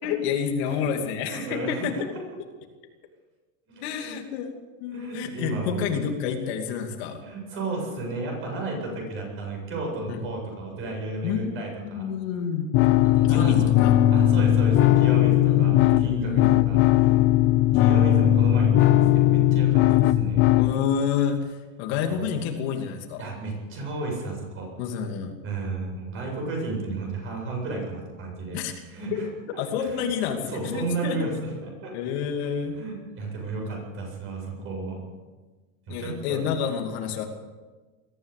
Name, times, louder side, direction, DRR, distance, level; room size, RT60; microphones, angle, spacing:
voice 1, 0.0-2.0 3.8-4.5 4.8-7.2 10.1-10.2 11.2-11.6 11.8-12.7 13.3-13.9 15.5-16.5 19.9-20.1 20.6-23.2 24.8-25.3 28.5-28.7 29.1-29.2 29.6-31.2 31.9-32.8 35.9-37.3, left 7 dB, 50° left, 3 dB, 2.7 m, -29 dB
voice 2, 1.3-2.0 3.7-4.1 4.9-6.1 7.2-12.1 13.0-13.8 14.1-17.2 17.7-19.8 20.2-20.4 23.2-24.7 25.4-28.6 28.9-29.3 29.8-30.1 30.5-31.9 32.8-35.0 35.9-36.6, right 3 dB, 30° right, 1 dB, 7.8 m, -33 dB
sound 1, 12.7-20.7, left 13 dB, 35° left, 0.8 m, -19 dB
21.5 x 14.5 x 8.5 m, 1.3 s
supercardioid pair, 165°, 40 cm